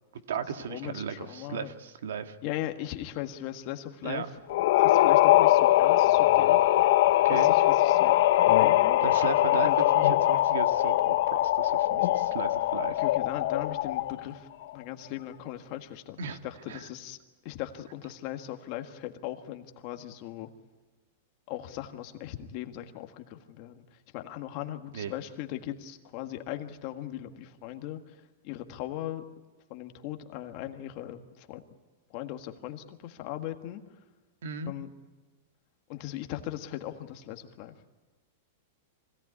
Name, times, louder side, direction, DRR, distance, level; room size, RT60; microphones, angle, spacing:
voice 1, 0.1-2.4 4.0-4.3 7.2-7.5 9.0-13.0 16.2-16.4 16.7-16.8 24.9-25.1 34.4-34.7, right 7 dB, 85° right, 7 dB, 1.8 m, -36 dB
voice 2, 0.7-1.7 2.4-4.2 4.8-6.6 7.3-9.0 9.5-9.8 13.0-17.2 17.4-20.5 21.5-29.2 29.7-31.6 32.1-33.8 34.7-34.9 35.9-37.7, left 13 dB, 35° left, 6 dB, 1.6 m, -38 dB
sound 1, 4.5-14.2, left 15 dB, 55° left, 0.8 m, -22 dB
25.0 x 17.5 x 9.6 m, 1.2 s
supercardioid pair, 170°, 0 cm